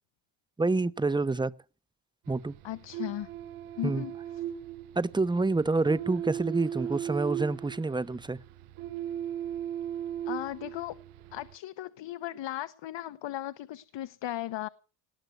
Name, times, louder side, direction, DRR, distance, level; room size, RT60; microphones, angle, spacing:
voice 1, 0.6-1.5 2.3-2.5 3.8-4.0 4.9-8.4, right 3 dB, 10° right, 0.8 m, -27 dB
sound 1, 2.2-11.5, right 10 dB, 75° right, 1.2 m, -38 dB
voice 2, 2.6-3.3 3.8-4.1 10.2-11.0 11.3-14.7, left 13 dB, 60° left, 1.1 m, -36 dB
19.0 x 7.8 x 8.0 m
supercardioid pair, 75°, 50 cm